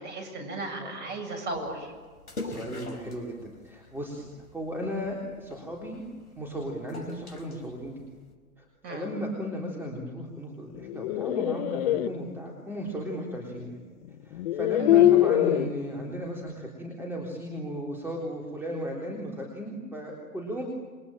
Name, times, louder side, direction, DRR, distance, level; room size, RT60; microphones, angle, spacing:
voice 1, 0.0-1.9 8.8-9.1 14.8-15.1, right 2 dB, 25° right, 3 dB, 7.6 m, -36 dB
sound 1, 1.5-8.3, left 2 dB, 80° left, 5.1 m, -44 dB
voice 2, 2.4-6.0 6.4-8.0 8.6-13.8 14.2-20.6, equal, 5° right, -1 dB, 3.6 m, -35 dB
sound 2, 10.8-12.1 13.6-13.7 14.3-15.7, left 13 dB, 40° left, 1.1 m, -22 dB
28.5 x 23.5 x 9.1 m, 1.5 s
hypercardioid pair, 125°, 45 cm